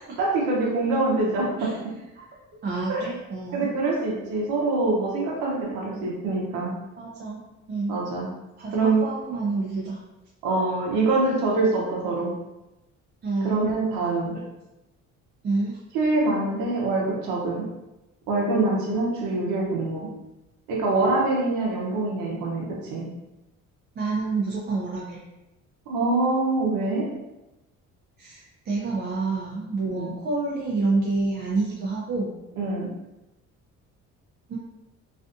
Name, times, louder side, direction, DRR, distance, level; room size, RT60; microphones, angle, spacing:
voice 1, 0.2-1.7 2.9-3.0 3.5-6.7 7.9-8.3 8.7-9.1 10.4-12.3 13.4-14.3 15.9-17.7 18.3-20.1 20.7-23.0 25.9-27.1 29.8-30.1 32.6-32.9, right 2 dB, 90° right, -3 dB, 0.7 m, -24 dB
voice 2, 2.6-3.7 5.9-6.0 7.0-8.0 8.6-10.0 13.2-13.7 14.3-14.4 15.4-15.8 24.0-25.2 28.2-32.3 34.5-34.6, right 3 dB, 35° right, -3 dB, 0.4 m, -28 dB
2.5 x 2.4 x 2.4 m, 0.98 s
cardioid pair, 90°, 31 cm